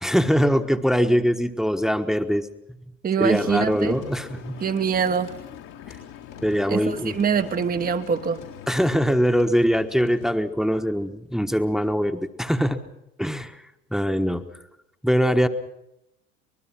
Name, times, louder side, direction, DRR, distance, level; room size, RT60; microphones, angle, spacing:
voice 1, 0.0-2.5 3.2-4.6 5.9-6.0 6.4-7.2 8.7-12.8 13.2-13.6 13.9-14.4 15.0-15.5, equal, ahead, 7 dB, 1.3 m, -22 dB
voice 2, 3.0-4.0 4.6-5.3 6.7-8.4, right 7 dB, 20° right, 8 dB, 1.0 m, -24 dB
sound 1, 3.3-10.3, left 5 dB, 85° left, 6.4 m, -47 dB
Engine, 3.4-8.9, left 10 dB, 55° left, 1.9 m, -42 dB
25.0 x 20.5 x 5.9 m, 0.85 s
figure-of-eight pair, 65°, 40 cm